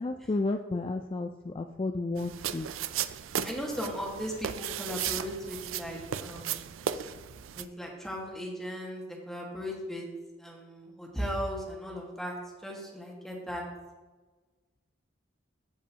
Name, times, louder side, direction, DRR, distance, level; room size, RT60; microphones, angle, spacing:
voice 1, 0.0-2.7, left 2 dB, 30° left, 5 dB, 0.3 m, -32 dB
sound 1, 2.2-7.6, right 9 dB, 90° right, 0.4 m, -35 dB
voice 2, 3.4-6.6 7.5-10.1 10.4-12.3 12.6-13.6, equal, ahead, -2 dB, 1.6 m, -37 dB
15.5 x 5.3 x 2.9 m, 1.3 s
head